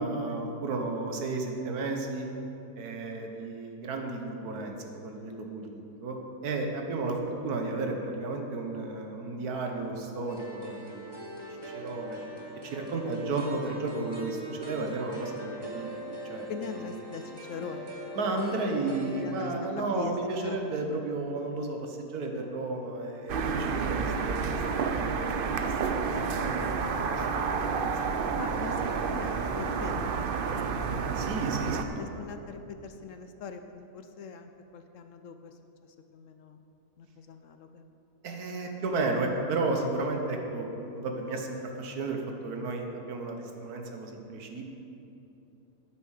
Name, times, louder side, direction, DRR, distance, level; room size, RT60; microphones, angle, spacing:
voice 1, 0.0-2.3 2.8-6.2 6.4-11.2 11.6-12.2 12.6-16.8 18.1-28.3 28.8-29.1 31.1-32.2 38.2-44.6, right 3 dB, 65° right, 3 dB, 1.6 m, -33 dB
sound 1, 10.3-19.6, right 1 dB, 20° right, 0.9 m, -41 dB
voice 2, 16.5-18.2 19.1-20.6 28.4-30.6 32.0-35.5 36.1-36.6 37.0-37.8, left 5 dB, 65° left, 7 dB, 0.8 m, -42 dB
sound 2, 23.3-31.9, right 5 dB, 90° right, 0.4 m, -30 dB
9.4 x 9.0 x 6.4 m, 2.9 s
omnidirectional pair, 1.7 m